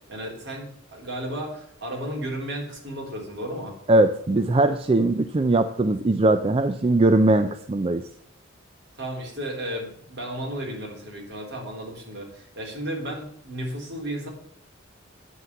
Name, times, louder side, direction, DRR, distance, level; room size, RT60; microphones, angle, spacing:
voice 1, 0.1-3.7 9.0-14.3, right 1 dB, 55° right, -1 dB, 3.6 m, -33 dB
voice 2, 3.9-8.1, right 2 dB, 30° right, 9 dB, 0.4 m, -20 dB
9.3 x 5.8 x 8.2 m, 0.66 s
head